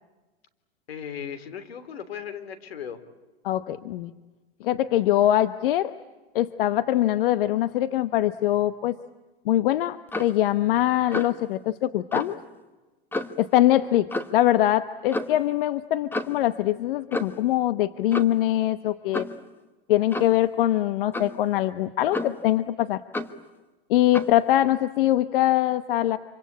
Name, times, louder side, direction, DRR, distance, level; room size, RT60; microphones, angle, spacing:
voice 1, 0.9-3.0, left 8 dB, 85° left, 12 dB, 3.2 m, -37 dB
voice 2, 3.4-4.1 4.6-5.9 6.3-9.0 9.4-12.4 13.4-19.3 19.9-23.0 23.9-26.2, left 13 dB, 65° left, 13 dB, 1.0 m, -23 dB
Clock, 10.1-10.4 11.1-11.4 12.1-12.3 13.1-13.4 14.1-14.4 15.1-15.4 16.1-16.4 17.1-17.5 18.1-18.4 19.1-19.4 20.1-20.4 21.1-21.4 22.1-22.5 23.1-23.4 24.1-24.4, left 2 dB, 5° left, 1.3 m, -31 dB
26.5 x 25.5 x 8.5 m, 1.2 s
hypercardioid pair, 130°, 30 cm